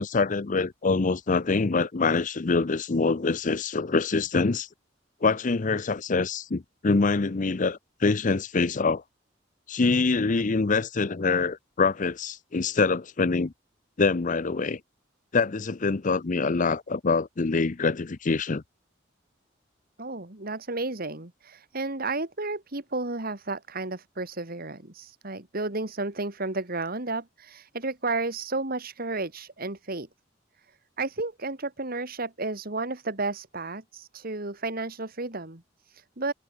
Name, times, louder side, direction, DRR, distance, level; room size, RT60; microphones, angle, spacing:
voice 1, 0.0-4.7 5.2-9.0 9.7-13.5 14.0-14.8 15.3-18.6, left 4 dB, 45° left, 0.6 m, -25 dB
voice 2, 20.0-30.1 31.0-36.3, right 3 dB, 50° right, 2.6 m, -32 dB
head